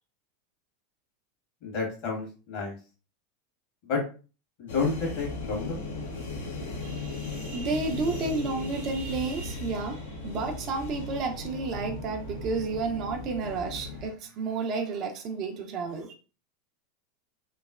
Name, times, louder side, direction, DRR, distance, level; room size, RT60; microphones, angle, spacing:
voice 1, 1.6-2.8 3.9-4.0 4.6-5.8, left 4 dB, 55° left, 1.4 m, -30 dB
sound 1, 4.7-14.1, left 2 dB, 70° left, 0.7 m, -37 dB
voice 2, 6.8-16.1, right 3 dB, 45° right, 0.5 m, -31 dB
3.0 x 2.0 x 2.3 m
hypercardioid pair, 90°, 0 cm